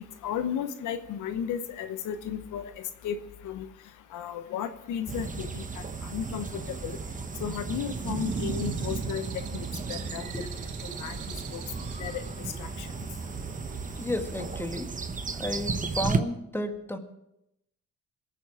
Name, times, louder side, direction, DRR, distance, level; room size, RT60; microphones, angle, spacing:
voice 1, 0.2-2.7 3.0-3.2 3.4-3.7 4.1-5.6 6.1-7.0 7.4-10.2 11.0-11.2 11.5-11.6 12.0-12.2 12.6-12.9, left 9 dB, 85° left, 10 dB, 1.0 m, -34 dB
sound 1, 5.1-16.2, right 4 dB, 25° right, 1.0 m, -34 dB
Bird, 7.5-14.7, right 10 dB, 80° right, 1.2 m, -47 dB
voice 2, 10.1-10.5 10.9-11.0 11.3-11.4 14.0-15.0 15.3-17.0, left 1 dB, 10° left, 5 dB, 1.8 m, -33 dB
22.0 x 7.6 x 5.0 m, 0.83 s
cardioid pair, 90°, 30 cm